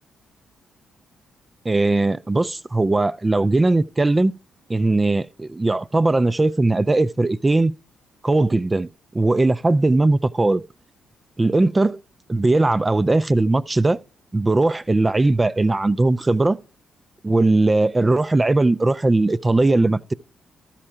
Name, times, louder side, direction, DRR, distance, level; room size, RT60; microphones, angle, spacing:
voice 1, 1.7-4.3 4.7-7.7 8.2-8.9 9.1-10.6 11.4-12.0 12.3-14.0 14.3-16.6 17.2-20.1, right 2 dB, 20° right, 0.4 m, -19 dB
13.0 x 4.4 x 4.9 m
cardioid pair, 70°, 0 cm